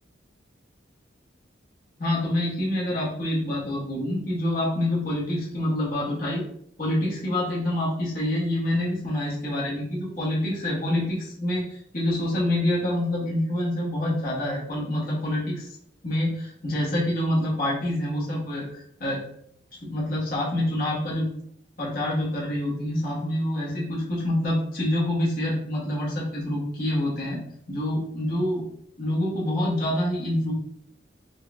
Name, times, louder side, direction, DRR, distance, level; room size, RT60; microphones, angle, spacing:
voice 1, 2.0-6.4 6.8-15.8 16.0-19.2 19.8-21.3 21.8-28.7 29.0-30.5, left 1 dB, 50° left, -6 dB, 1.2 m, -26 dB
3.9 x 2.3 x 2.5 m, 0.68 s
head